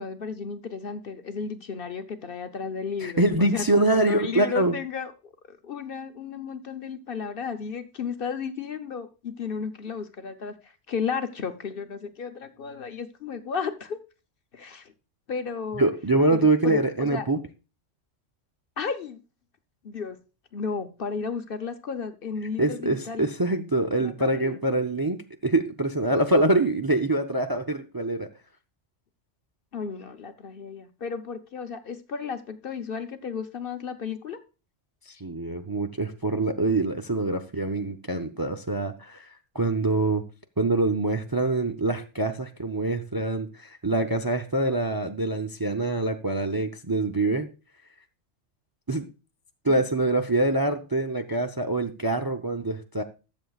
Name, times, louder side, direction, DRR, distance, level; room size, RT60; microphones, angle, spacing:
voice 1, 0.0-14.0 14.5-14.9 15.3-15.9 16.3-17.2 18.8-19.2 19.8-20.2 20.5-23.3 24.0-24.6 29.7-34.4 49.7-49.9, left 5 dB, 55° left, 0.9 m, -33 dB
voice 2, 3.0-4.8 15.8-17.4 22.6-28.3 35.1-40.2 40.6-47.5 48.9-49.1 49.6-53.0, right 2 dB, 25° right, 0.5 m, -25 dB
21.0 x 7.2 x 2.4 m
omnidirectional pair, 1.2 m